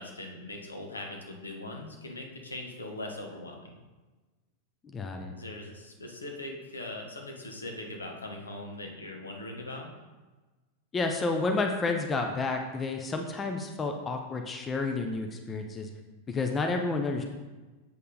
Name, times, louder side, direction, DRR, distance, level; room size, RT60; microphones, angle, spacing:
voice 1, 0.0-3.8 5.3-9.9, left 1 dB, 75° left, 1 dB, 1.3 m, -40 dB
voice 2, 4.8-5.3 10.9-15.9 16.3-17.2, left 3 dB, 20° left, 4 dB, 0.7 m, -30 dB
7.7 x 5.4 x 4.0 m, 1.2 s
figure-of-eight pair, 90°, 0 cm